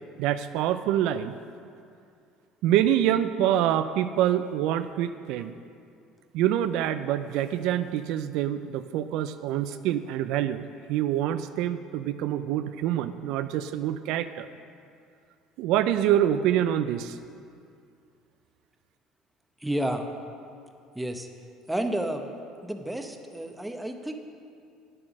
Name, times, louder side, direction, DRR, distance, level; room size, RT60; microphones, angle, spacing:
voice 1, 0.2-1.4 2.6-5.5 6.3-14.5 15.6-17.2, right 11 dB, 75° right, 11 dB, 0.4 m, -26 dB
voice 2, 19.6-20.1 20.9-21.3 21.7-22.3 22.6-24.2, right 1 dB, 5° right, 5 dB, 0.8 m, -31 dB
9.8 x 7.6 x 6.0 m, 2.4 s
cardioid pair, 115°, 0 cm